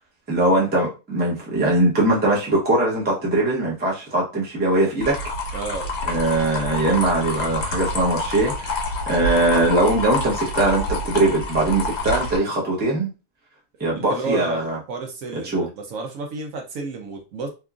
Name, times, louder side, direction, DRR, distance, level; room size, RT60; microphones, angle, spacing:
voice 1, 0.3-5.1 6.1-8.8 9.1-13.1 13.8-14.8 15.4-15.7, right 2 dB, 10° right, -4 dB, 0.5 m, -21 dB
sound 1, 5.0-12.4, left 2 dB, 75° left, 1.3 m, -27 dB
voice 2, 5.5-5.9 14.0-17.5, right 3 dB, 70° right, 1 dB, 0.9 m, -31 dB
2.8 x 2.5 x 2.3 m, 0.30 s
omnidirectional pair, 1.6 m